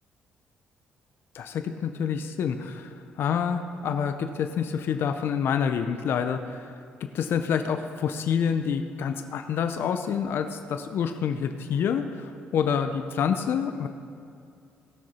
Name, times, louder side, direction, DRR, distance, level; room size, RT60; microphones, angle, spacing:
voice 1, 1.3-6.7 7.1-13.9, left 7 dB, 65° left, 7 dB, 0.6 m, -27 dB
17.0 x 6.5 x 4.3 m, 2.4 s
cardioid pair, 105°, 4 cm